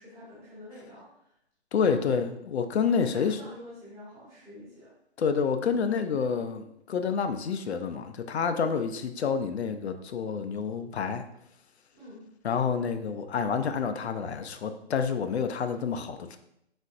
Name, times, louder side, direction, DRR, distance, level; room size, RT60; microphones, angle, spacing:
voice 1, 0.0-1.3 1.8-2.0 2.8-4.9 11.9-12.3, left 1 dB, 5° right, -11 dB, 0.9 m, -46 dB
voice 2, 1.7-3.4 5.2-11.2 12.4-16.4, left 6 dB, 70° left, 9 dB, 0.5 m, -28 dB
4.2 x 3.8 x 2.4 m, 0.78 s
hypercardioid pair, 160°, 34 cm